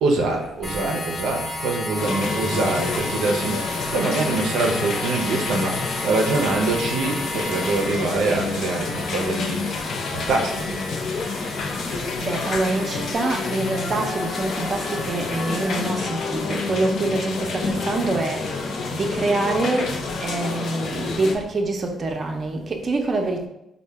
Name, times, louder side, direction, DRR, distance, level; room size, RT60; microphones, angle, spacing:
voice 1, 0.0-9.6 10.1-10.8, right 3 dB, 85° right, 2 dB, 0.4 m, -24 dB
sound 1, 0.6-15.9, left 2 dB, 30° left, 1.0 m, -33 dB
sound 2, 2.0-21.3, left 4 dB, 65° left, 0.5 m, -28 dB
voice 2, 11.8-23.5, right 2 dB, 40° right, 2 dB, 0.5 m, -26 dB
4.3 x 2.1 x 3.3 m, 0.86 s
cardioid pair, 90°, 0 cm